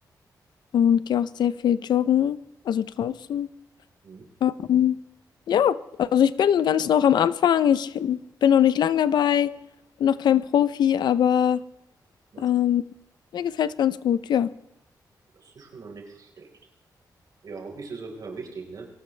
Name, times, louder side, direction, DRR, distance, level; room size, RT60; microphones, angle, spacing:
voice 1, 0.7-2.4 2.7-3.5 4.4-5.0 5.5-9.5 10.0-11.6 12.4-12.8 13.3-14.5, left 9 dB, 85° left, 16 dB, 0.7 m, -21 dB
voice 2, 15.3-16.5 17.4-18.9, right 4 dB, 60° right, 1 dB, 4.6 m, -40 dB
22.5 x 18.0 x 3.4 m, 0.88 s
wide cardioid pair, 125°, 7 cm